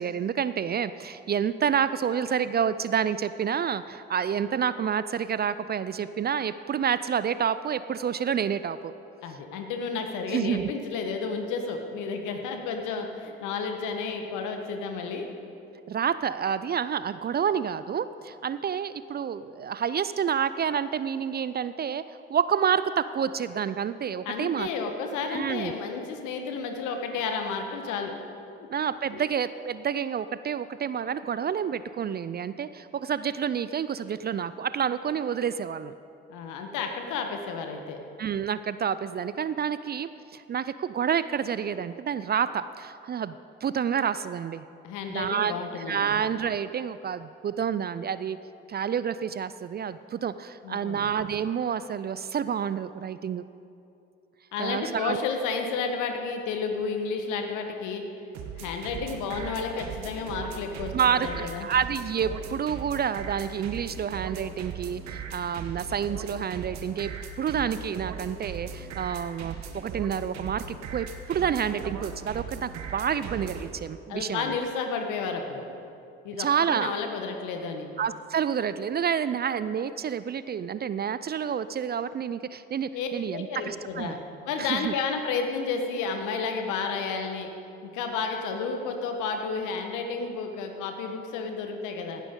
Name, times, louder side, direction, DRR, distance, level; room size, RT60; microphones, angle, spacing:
voice 1, 0.0-8.9 10.3-10.7 15.9-25.0 25.3-25.7 28.7-35.9 38.2-43.4 43.6-44.7 45.1-45.5 45.9-48.4 48.7-53.4 54.6-55.2 60.9-67.1 67.4-74.6 76.4-76.9 78.0-84.2 84.6-84.9, right 8 dB, 30° right, 14 dB, 0.4 m, -29 dB
voice 2, 9.2-15.3 24.2-28.1 29.1-29.3 36.3-38.0 44.8-46.1 50.6-51.1 54.5-58.0 58.6-61.7 74.1-75.6 76.2-77.9 82.9-84.2 84.4-87.5 87.8-92.2, left 5 dB, 65° left, 4 dB, 1.5 m, -31 dB
sound 1, 58.3-73.7, right 6 dB, 60° right, 1.2 m, -38 dB
17.5 x 12.0 x 3.8 m, 2.7 s
hypercardioid pair, 50°, 32 cm